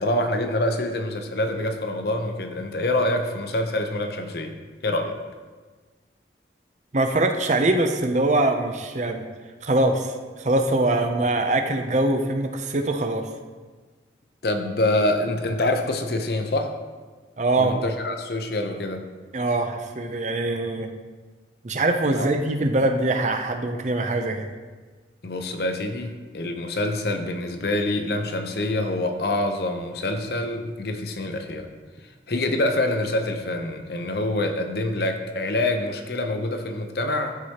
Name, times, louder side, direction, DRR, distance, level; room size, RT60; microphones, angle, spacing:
voice 1, 0.0-4.6 4.8-5.2 14.4-16.7 17.6-19.1 22.1-22.3 25.2-31.7 32.3-37.3, left 1 dB, 60° left, 6 dB, 0.7 m, -26 dB
voice 2, 6.9-9.2 9.6-13.2 17.4-17.7 19.3-20.9 21.6-24.5, right 2 dB, 40° right, 5 dB, 0.6 m, -23 dB
13.0 x 4.8 x 2.9 m, 1.4 s
head